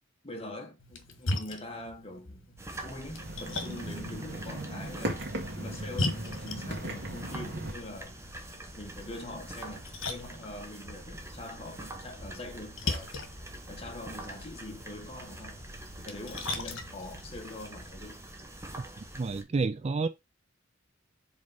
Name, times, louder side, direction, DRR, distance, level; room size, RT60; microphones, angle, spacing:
voice 1, 0.2-5.2 5.6-8.2 8.8-13.1 13.7-15.7 16.0-18.2, left 1 dB, 30° left, 1.6 m, -43 dB
Splash splatter, 0.8-17.9, left 2 dB, 75° left, 1.5 m, -40 dB
sound 1, 2.6-19.4, right 1 dB, 15° right, 1.1 m, -45 dB
sound 2, 3.1-7.7, right 1 dB, 60° right, 2.2 m, -37 dB
voice 2, 19.2-20.1, right 4 dB, 30° right, 0.4 m, -29 dB
5.3 x 3.9 x 5.3 m
head